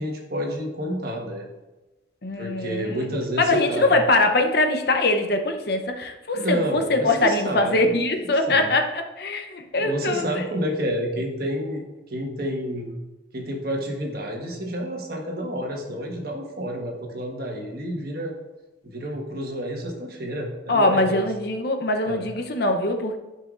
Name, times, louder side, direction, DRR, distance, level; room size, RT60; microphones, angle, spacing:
voice 1, 0.0-1.4 2.4-4.0 6.3-7.8 8.2-8.7 9.7-13.0 13.3-18.3 18.8-21.3 22.0-22.2, equal, 50° right, 0 dB, 1.4 m, -29 dB
voice 2, 2.2-3.1 3.4-10.4 20.7-23.2, left 2 dB, 55° left, 5 dB, 0.7 m, -22 dB
11.0 x 5.6 x 2.5 m, 1.1 s
head